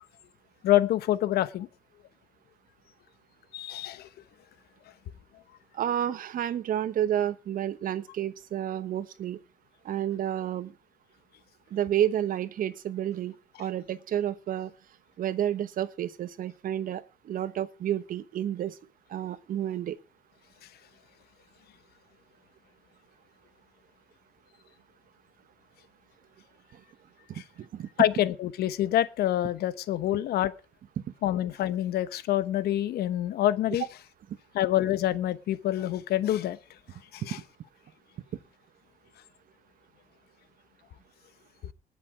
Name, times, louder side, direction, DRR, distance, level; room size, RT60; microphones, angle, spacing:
voice 1, 0.6-1.7 3.5-4.1 27.3-27.4 28.0-30.5 31.2-33.8 34.5-36.6 37.1-37.4, left 13 dB, 70° left, 1.0 m, -26 dB
voice 2, 5.7-9.4 9.8-10.7 11.7-13.3 13.6-14.7 15.2-18.8 19.1-20.0 26.7-26.8 27.3-27.9 31.0-31.1 37.2-37.4, right 11 dB, 55° right, 1.0 m, -30 dB
20.0 x 6.8 x 4.9 m
cardioid pair, 110°, 17 cm